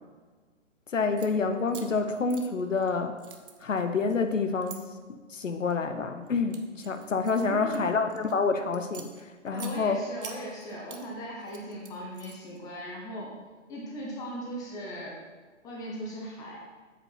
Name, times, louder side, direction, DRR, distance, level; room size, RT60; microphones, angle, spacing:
voice 1, 0.9-3.2 3.6-10.0, left 4 dB, 80° left, 8 dB, 0.9 m, -28 dB
sound 1, 1.0-1.3 1.7-2.9 3.2-4.8 5.5-5.8 6.3-8.3 8.7-9.7 10.2-11.0 11.4-12.6, right 7 dB, 45° right, 0.9 m, -46 dB
voice 2, 7.4-8.0 9.5-13.3 13.7-15.2 15.6-16.6, equal, 10° left, -2 dB, 0.7 m, -38 dB
8.3 x 5.2 x 5.5 m, 1.4 s
figure-of-eight pair, 135°, 38 cm